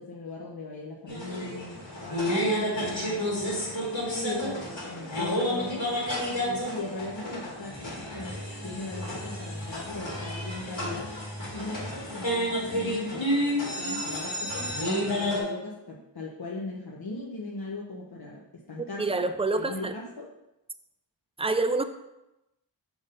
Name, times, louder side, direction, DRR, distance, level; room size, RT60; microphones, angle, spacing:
voice 1, 0.0-3.3 3.9-5.8 6.4-11.1 11.5-14.7 15.1-19.0 19.6-20.3, left 2 dB, 55° left, -3 dB, 0.9 m, -39 dB
sound 1, 1.1-15.4, equal, 80° left, 2.1 m, -31 dB
voice 2, 19.0-19.9 21.4-21.8, right 3 dB, 15° right, 9 dB, 0.4 m, -27 dB
6.1 x 3.7 x 5.3 m, 0.92 s
wide cardioid pair, 60°, 45 cm